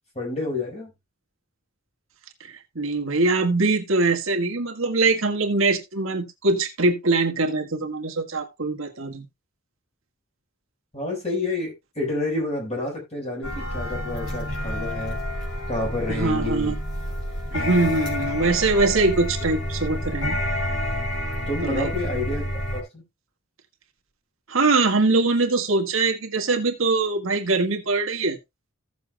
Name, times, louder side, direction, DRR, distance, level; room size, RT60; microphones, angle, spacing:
voice 1, 0.1-0.9 10.9-15.2 15.7-16.8 21.5-23.0, left 2 dB, 30° left, 4.8 m, -29 dB
voice 2, 2.4-9.3 16.1-16.8 17.5-20.4 21.6-21.9 24.5-28.4, right 3 dB, 70° right, 1.6 m, -23 dB
sound 1, 13.4-22.8, left 1 dB, 85° left, 4.2 m, -29 dB
15.5 x 7.1 x 2.2 m
head